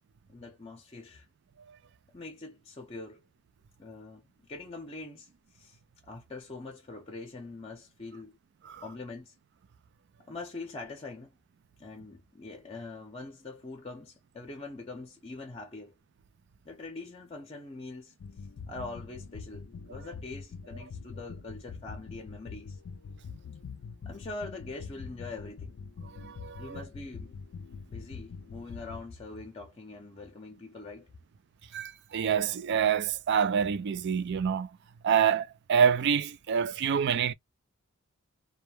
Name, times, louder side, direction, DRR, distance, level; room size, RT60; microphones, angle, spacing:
voice 1, 0.3-1.3 2.1-3.2 3.8-4.2 4.5-8.4 8.8-9.3 10.3-11.3 11.8-15.9 16.6-18.1 18.7-22.8 24.0-25.8 26.6-27.4 27.9-31.1, left 3 dB, 30° left, 0.6 m, -43 dB
sound 1, 18.2-29.0, left 5 dB, 65° left, 0.4 m, -44 dB
voice 2, 26.0-26.8 31.7-34.7 35.0-37.3, right 7 dB, 55° right, 0.4 m, -27 dB
2.2 x 2.1 x 3.0 m
head